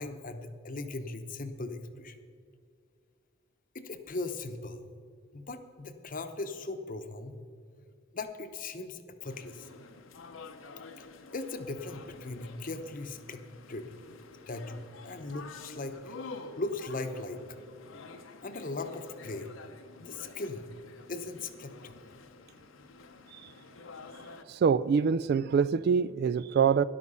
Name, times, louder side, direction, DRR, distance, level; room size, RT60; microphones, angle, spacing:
voice 1, 0.0-2.2 3.7-4.8 5.3-7.3 8.1-9.7 11.0-11.1 11.3-13.9 14.5-17.6 18.4-19.5 20.0-20.7 21.1-22.0, left 2 dB, 45° left, 0.9 m, -39 dB
sound 1, 9.2-24.4, left 4 dB, 85° left, 0.9 m, -49 dB
voice 2, 24.5-26.8, right 6 dB, 55° right, 0.3 m, -25 dB
13.0 x 11.0 x 5.5 m
head